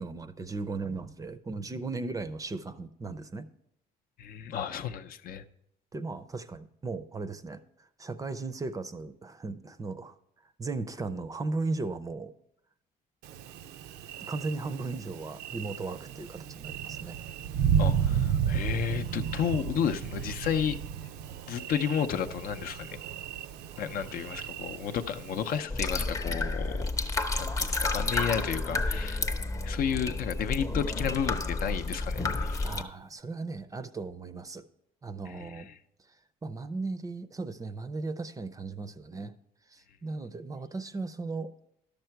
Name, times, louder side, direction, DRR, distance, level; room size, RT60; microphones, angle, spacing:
voice 1, 0.0-3.5 5.9-10.2 10.6-12.3 14.3-17.2 27.6-27.7 32.6-34.6 35.0-35.7 36.4-39.3 39.7-41.5, right 3 dB, 20° right, 11 dB, 0.5 m, -36 dB
voice 2, 4.2-5.4 17.8-20.8 21.5-23.0 23.8-26.9 27.4-29.3 29.6-32.8 35.3-35.8, left 8 dB, 60° left, 9 dB, 0.6 m, -32 dB
Thunder, 13.2-25.6, right 8 dB, 75° right, 0.5 m, -33 dB
sound 1, 25.7-32.8, left 2 dB, 20° left, 0.7 m, -31 dB
12.0 x 6.7 x 4.5 m, 0.77 s
cardioid pair, 110°, 17 cm